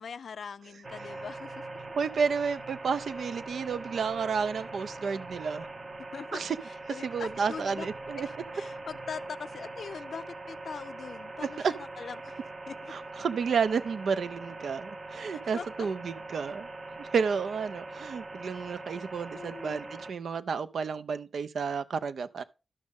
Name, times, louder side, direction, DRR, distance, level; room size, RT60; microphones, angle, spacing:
voice 1, 0.0-1.6 6.1-7.9 8.2-12.4 12.7-13.1 15.5-15.9 19.3-20.0, left 6 dB, 60° left, 0.4 m, -42 dB
sound 1, 0.8-20.1, right 2 dB, 30° right, 0.7 m, -42 dB
voice 2, 2.0-5.7 6.3-6.6 7.0-8.3 11.4-11.7 12.9-16.7 17.0-22.4, right 5 dB, 70° right, 0.5 m, -31 dB
12.0 x 6.3 x 3.6 m
wide cardioid pair, 150°, 0 cm